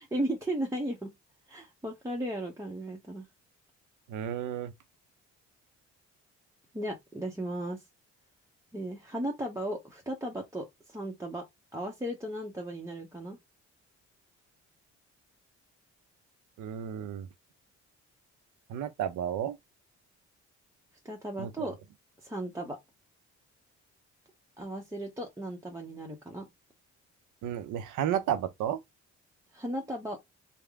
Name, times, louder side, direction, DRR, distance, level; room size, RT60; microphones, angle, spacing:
voice 1, 0.1-1.1 1.5-3.3 6.7-7.8 8.7-11.4 11.7-13.4 21.0-21.8 22.2-22.8 24.6-26.5 29.5-30.2, right 1 dB, 10° right, 0.8 m, -35 dB
voice 2, 4.1-4.7 16.6-17.3 18.7-19.6 21.4-21.7 27.4-28.8, right 10 dB, 85° right, 0.7 m, -32 dB
3.5 x 2.2 x 3.4 m
cardioid pair, 90°, 30 cm